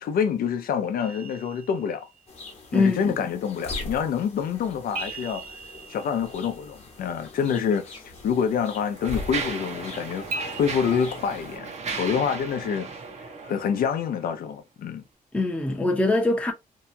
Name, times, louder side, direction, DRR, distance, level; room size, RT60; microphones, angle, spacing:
voice 1, 0.0-2.1 2.7-5.4 5.9-12.9 13.4-15.0, left 7 dB, 80° left, 0.5 m, -27 dB
sound 1, 1.0-2.3 4.9-7.0 10.3-10.6, right 4 dB, 90° right, 1.1 m, -38 dB
sound 2, 2.3-11.6, left 2 dB, 45° left, 1.0 m, -41 dB
voice 2, 2.7-3.1 15.3-16.5, left 2 dB, 10° left, 0.7 m, -23 dB
Mechanisms, 7.7-7.8 8.5-14.3, right 5 dB, 50° right, 0.7 m, -36 dB
2.7 x 2.3 x 2.6 m
cardioid pair, 130°, 15 cm